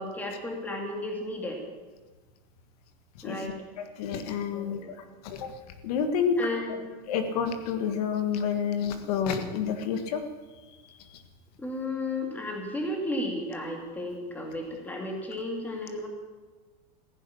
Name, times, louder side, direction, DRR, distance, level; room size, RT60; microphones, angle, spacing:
voice 1, 0.0-1.6 3.2-3.6 4.5-5.0 6.4-6.8 11.6-16.1, left 1 dB, 10° left, 1 dB, 2.5 m, -33 dB
voice 2, 3.8-4.8 5.2-5.5 5.8-6.4 7.1-10.2, left 7 dB, 65° left, 7 dB, 1.6 m, -29 dB
15.5 x 11.0 x 8.5 m, 1.3 s
supercardioid pair, 170°, 21 cm